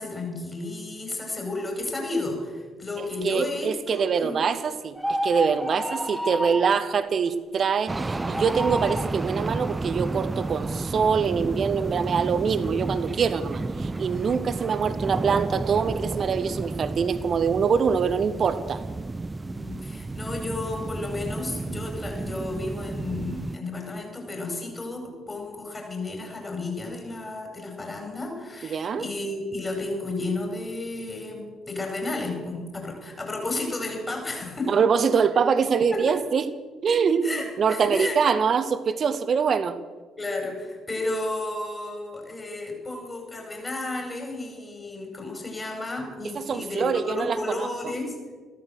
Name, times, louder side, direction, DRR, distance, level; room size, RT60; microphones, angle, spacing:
voice 1, 0.0-4.4 14.2-14.5 19.4-34.7 35.9-36.2 37.2-38.2 40.2-48.2, left 2 dB, 25° left, 2 dB, 5.5 m, -32 dB
voice 2, 3.0-5.0 5.2-18.8 28.7-29.1 34.7-36.5 36.8-39.8 46.3-47.7, right 6 dB, 45° right, 13 dB, 1.0 m, -24 dB
sound 1, 5.0-6.8 8.1-9.1, equal, ahead, 1.7 m, -29 dB
sound 2, 7.9-23.6, right 3 dB, 20° right, 0.4 m, -32 dB
14.5 x 13.5 x 6.8 m, 1.4 s
figure-of-eight pair, 45°, 0 cm